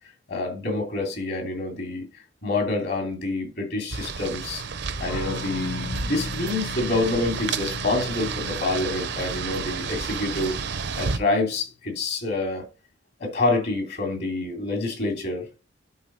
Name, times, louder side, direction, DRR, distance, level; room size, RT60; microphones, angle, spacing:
voice 1, 0.3-2.0 2.4-4.6 5.0-10.5 10.9-12.7 13.2-15.6, left 2 dB, 55° left, 2.9 m, -27 dB
sound 1, 3.9-11.2, right 5 dB, 60° right, 0.7 m, -31 dB
sound 2, 5.1-11.4, left 5 dB, 75° left, 1.0 m, -38 dB
12.0 x 4.0 x 4.3 m
head